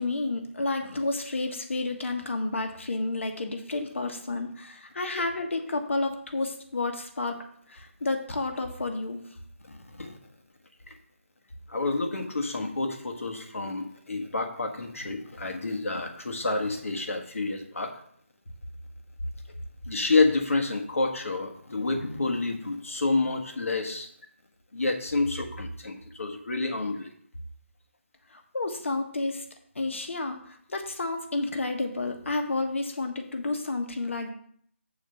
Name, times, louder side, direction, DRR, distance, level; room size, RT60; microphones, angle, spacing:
voice 1, 0.0-7.4 7.7-9.2 28.5-29.4 29.7-30.4 30.7-34.3, left 2 dB, 65° left, 5 dB, 1.4 m, -30 dB
voice 2, 9.6-10.2 10.9-11.0 11.7-17.9 19.9-24.1 24.7-27.1, left 3 dB, 80° left, 4 dB, 1.5 m, -29 dB
7.3 x 4.2 x 6.5 m, 0.63 s
figure-of-eight pair, 170°, 7 cm